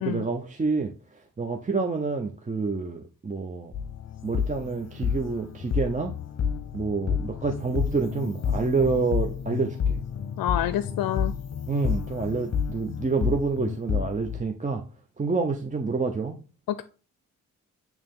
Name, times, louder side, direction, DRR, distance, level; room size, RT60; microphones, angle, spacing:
voice 1, 0.0-0.9 1.4-3.7 4.2-6.1 6.7-10.0 11.7-14.8 15.2-16.4, right 4 dB, 20° right, 0.7 m, -28 dB
sound 1, 3.7-14.4, left 7 dB, 45° left, 0.9 m, -30 dB
voice 2, 10.4-11.3 16.7-16.8, left 12 dB, 75° left, 0.5 m, -27 dB
8.8 x 3.0 x 3.6 m
cardioid pair, 70°, 35 cm